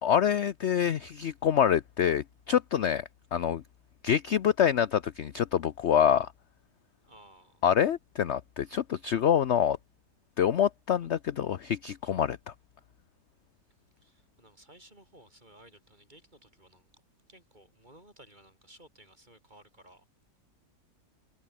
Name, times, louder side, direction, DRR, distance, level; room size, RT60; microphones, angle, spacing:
voice 1, 0.0-3.0 3.3-3.6 4.0-6.3 7.6-9.8 10.4-12.4, left 9 dB, 55° left, 0.8 m, -26 dB
voice 2, 7.1-7.7 11.0-11.1 14.0-16.9 17.3-20.1, right 1 dB, 25° right, 8.0 m, -57 dB
omnidirectional pair, 1.9 m